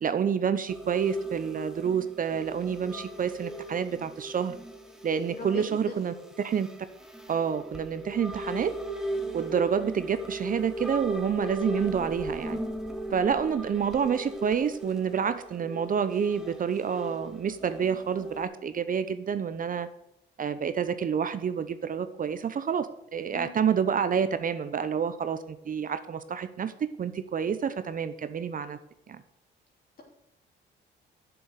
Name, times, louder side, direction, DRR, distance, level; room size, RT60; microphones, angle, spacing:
voice 1, 0.0-4.5 5.0-6.7 7.3-8.7 9.3-12.6 13.1-19.9 20.4-28.8 29.1-29.2, right 7 dB, 45° right, 12 dB, 0.7 m, -28 dB
sound 1, 0.7-18.4, right 1 dB, 5° right, 1.2 m, -38 dB
voice 2, 2.7-3.0 5.3-5.9 9.2-9.4 23.3-23.5, left 4 dB, 50° left, -1 dB, 3.4 m, -41 dB
7.8 x 6.9 x 7.5 m, 0.82 s
cardioid pair, 90°, 20 cm